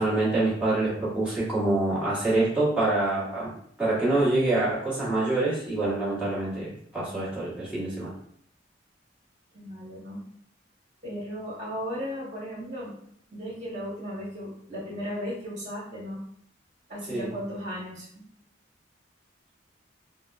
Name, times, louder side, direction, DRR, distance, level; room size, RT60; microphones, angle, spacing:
voice 1, 0.0-3.5 3.8-8.1 17.1-17.3, right 2 dB, 5° right, -9 dB, 1.3 m, -26 dB
voice 2, 9.5-10.2 11.0-13.0 13.3-16.2 16.9-18.2, equal, 40° right, -6 dB, 1.4 m, -36 dB
3.7 x 2.1 x 2.4 m, 0.66 s
head